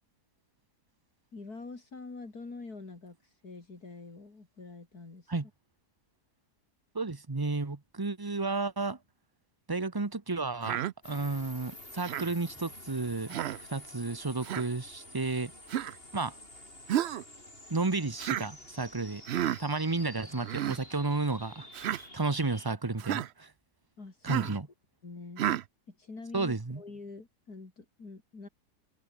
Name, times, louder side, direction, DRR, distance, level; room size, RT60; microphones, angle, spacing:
voice 1, 1.3-5.3 24.0-24.5 25.0-25.5 25.9-28.5, left 3 dB, 65° left, 4.4 m, -45 dB
voice 2, 6.9-9.0 9.7-13.4 13.7-15.5 16.1-16.3 17.7-19.2 19.6-21.7 22.1-23.5 24.2-24.7 26.3-26.8, right 3 dB, 15° right, 1.0 m, -32 dB
Human voice, 10.6-10.9 12.0-12.3 13.3-13.6 14.4-14.7 15.7-16.0 16.9-17.2 18.2-18.5 19.3-19.6 20.4-20.8 21.7-22.0 23.0-23.3 24.3-24.6 25.4-25.6, right 12 dB, 70° right, 0.6 m, -31 dB
sound 1, 11.0-22.7, left 1 dB, 35° left, 7.8 m, -49 dB
omnidirectional pair, 1.7 m